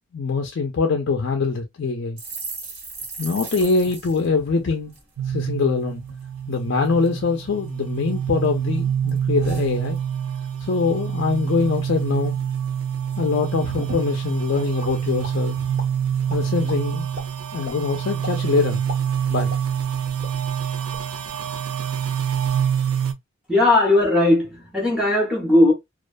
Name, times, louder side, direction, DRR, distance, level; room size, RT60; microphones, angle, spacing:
voice 1, 0.1-2.2 3.2-4.9 5.2-6.0 6.5-10.0 10.6-12.4 13.2-15.5 16.3-17.1 17.5-18.8 19.3-19.5, left 4 dB, 55° left, 0.4 m, -23 dB
sound 1, 2.2-5.7 6.0-6.2 6.5-7.1 7.6-8.4 8.7-10.4 10.7-10.9 11.2-11.8 12.1-12.2 12.5-13.2 13.5-13.6 13.8-15.6 16.1-16.5, right 3 dB, 70° right, 1.4 m, -39 dB
sound 2, 5.2-23.1, right 8 dB, 90° right, 0.4 m, -26 dB
sound 3, 14.8-15.4 15.8-15.9 16.3-16.8 17.1-17.3 17.6-17.8 18.2-18.4 18.7-19.9 20.2-20.3 20.7-21.1, left 1 dB, 35° right, 1.0 m, -36 dB
voice 2, 23.5-25.7, left 2 dB, 5° right, 0.7 m, -17 dB
2.3 x 2.2 x 2.4 m
head